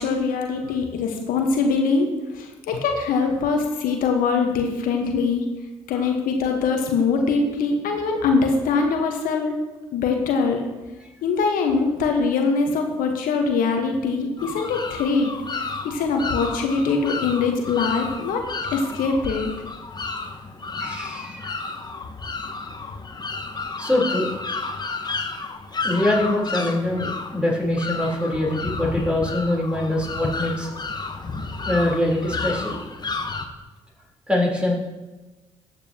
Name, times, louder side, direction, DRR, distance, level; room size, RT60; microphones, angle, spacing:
voice 1, 0.0-2.1 2.3-5.4 5.9-9.5 9.9-10.6 11.2-18.5 18.7-19.5, left 4 dB, 65° left, 3 dB, 1.2 m, -23 dB
sound 1, 14.4-33.4, left 3 dB, 25° left, 1.1 m, -31 dB
voice 2, 20.8-21.6 23.8-24.3 25.8-30.7 31.7-32.8 34.3-34.7, left 1 dB, 5° right, -2 dB, 3.6 m, -23 dB
13.5 x 8.2 x 2.9 m, 1.2 s
hypercardioid pair, 50°, 16 cm